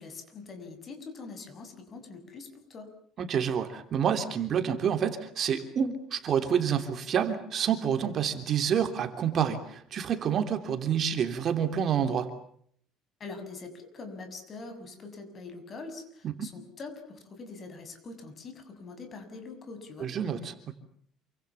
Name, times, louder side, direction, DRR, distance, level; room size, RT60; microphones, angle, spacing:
voice 1, 0.0-2.9 13.2-20.1, left 3 dB, 35° left, 8 dB, 6.8 m, -43 dB
voice 2, 3.2-12.3 16.4-16.5 20.0-20.7, right 8 dB, 45° right, 8 dB, 3.2 m, -28 dB
28.0 x 25.5 x 7.1 m, 0.63 s
cardioid pair, 130°, 0 cm